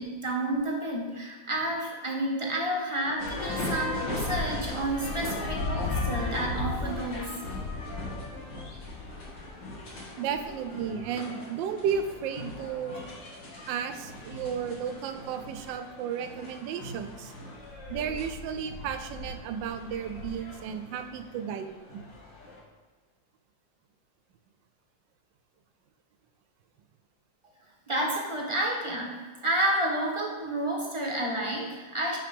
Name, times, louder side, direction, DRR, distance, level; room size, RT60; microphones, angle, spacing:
voice 1, 0.0-7.3 27.9-32.2, right 1 dB, 20° right, -1 dB, 1.0 m, -30 dB
sound 1, 3.2-22.6, left 2 dB, 70° left, 2.4 m, -37 dB
voice 2, 10.2-13.0 13.7-17.3 17.9-21.9 31.6-31.7, right 7 dB, 85° right, 8 dB, 1.3 m, -33 dB
5.8 x 5.6 x 5.3 m, 1.4 s
omnidirectional pair, 2.0 m